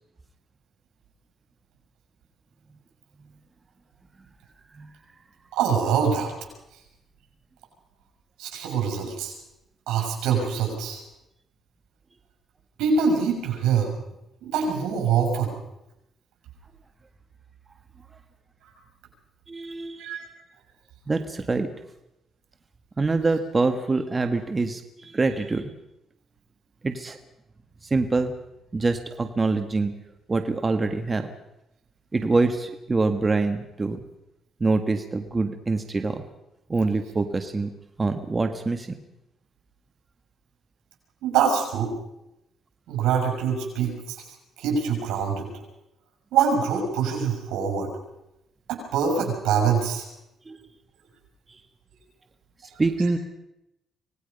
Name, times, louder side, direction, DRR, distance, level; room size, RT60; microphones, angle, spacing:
voice 1, 5.5-6.3 8.4-9.3 9.9-11.0 12.8-13.9 14.4-15.5 20.0-20.2 41.2-41.9 42.9-44.2 44.6-45.5 46.3-47.9 48.7-50.1, right 6 dB, 90° right, 2 dB, 6.6 m, -24 dB
voice 2, 19.5-20.0 21.1-21.7 23.0-25.7 26.8-27.2 27.8-28.3 28.7-29.9 30.3-31.3 32.1-34.0 34.6-36.2 36.7-37.7 38.0-38.9 50.5-50.6 51.5-51.6 52.8-53.2, right 3 dB, 25° right, 7 dB, 1.6 m, -25 dB
25.5 x 19.0 x 5.5 m, 0.88 s
cardioid pair, 90°, 0 cm